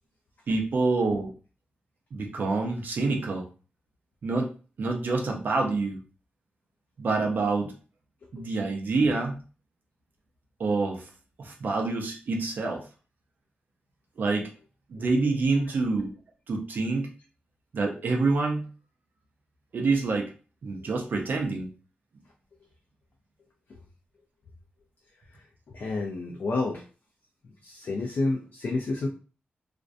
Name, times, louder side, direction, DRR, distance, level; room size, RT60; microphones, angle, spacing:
voice 1, 0.5-1.3 2.1-3.5 4.2-4.5 4.8-6.0 7.0-7.7 8.3-9.4 10.6-11.1 11.4-12.8 14.2-14.5 14.9-16.1 16.5-17.1 17.7-18.7 19.7-20.3 20.6-21.7, right 3 dB, 60° right, 1 dB, 0.5 m, -27 dB
voice 2, 25.3-26.8 27.6-29.1, left 3 dB, 60° left, 0 dB, 0.4 m, -30 dB
2.5 x 2.1 x 2.5 m, 0.36 s
wide cardioid pair, 125°, 4 cm